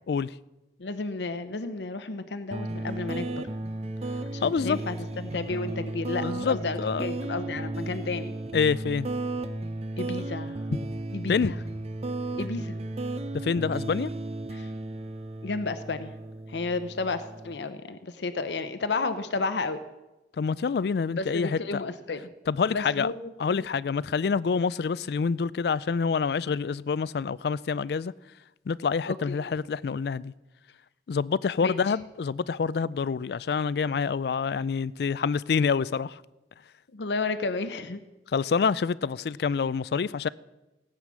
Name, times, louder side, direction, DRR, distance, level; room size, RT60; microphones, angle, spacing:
voice 1, 0.8-3.3 4.3-8.3 10.0-10.6 11.1-11.6 12.4-12.7 14.5-14.7 15.4-16.1 16.5-19.8 21.2-22.3 22.7-23.6 29.1-29.4 31.6-31.8 36.9-38.0, left 3 dB, 75° left, 0.7 m, -32 dB
sound 1, 2.5-17.6, right 2 dB, 35° right, 0.6 m, -34 dB
voice 2, 4.4-4.8 6.2-7.1 8.5-9.1 11.3-11.5 13.4-14.1 20.4-21.8 22.5-23.1 23.4-28.1 28.7-30.3 31.1-36.2 38.3-40.3, left 5 dB, 60° left, 0.3 m, -27 dB
18.0 x 8.9 x 6.2 m
head